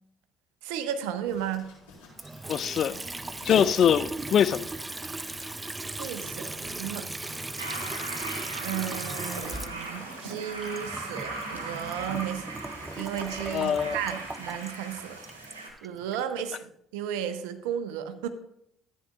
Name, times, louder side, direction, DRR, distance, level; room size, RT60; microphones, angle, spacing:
voice 1, 0.6-1.7 5.9-7.1 8.6-12.5 13.0-15.2 15.8-18.3, right 9 dB, 75° right, 0.7 m, -34 dB
sound 1, 1.2-10.0, left 3 dB, 75° left, 4.3 m, -45 dB
Water tap faucet / Sink (filling or washing) / Trickle dribble, 2.1-16.2, right 2 dB, 20° right, 0.5 m, -38 dB
voice 2, 2.5-3.0 3.4-4.7 13.5-14.0, left 9 dB, 55° left, 0.3 m, -23 dB
sound 2, 7.6-15.7, right 2 dB, 90° right, 1.4 m, -39 dB
13.5 x 9.3 x 2.4 m
figure-of-eight pair, 50°, 0 cm